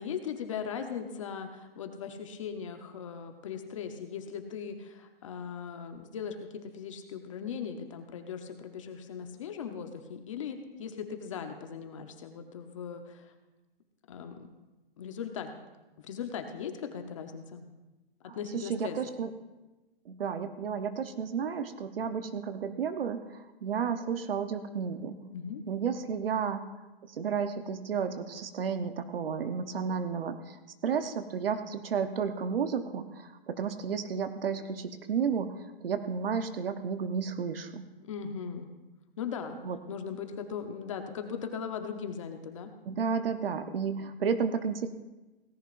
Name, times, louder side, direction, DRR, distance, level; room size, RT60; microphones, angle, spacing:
voice 1, 0.0-13.3 14.1-14.4 15.0-15.5 16.0-17.6 18.2-19.0 25.3-25.6 38.0-38.7 39.2-39.6 39.9-42.7, left 7 dB, 35° left, 6 dB, 0.9 m, -39 dB
voice 2, 18.3-19.3 20.1-25.2 25.7-26.6 27.0-37.8 39.6-39.8 42.9-44.9, right 6 dB, 70° right, 9 dB, 1.0 m, -32 dB
17.5 x 16.0 x 2.6 m, 1.1 s
hypercardioid pair, 170°, 30 cm